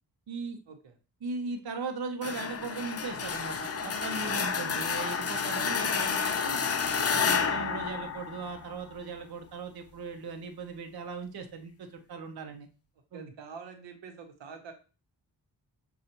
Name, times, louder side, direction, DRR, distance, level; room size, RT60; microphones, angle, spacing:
voice 1, 0.3-0.6 1.2-6.6 7.1-12.7 13.1-13.3, right 4 dB, 60° right, 5 dB, 0.7 m, -38 dB
sound 1, 2.2-8.9, left 6 dB, 35° left, 0.5 m, -30 dB
voice 2, 13.1-14.7, right 5 dB, 85° right, 5 dB, 0.9 m, -46 dB
6.4 x 2.3 x 2.8 m, 0.33 s
cardioid pair, 55°, 43 cm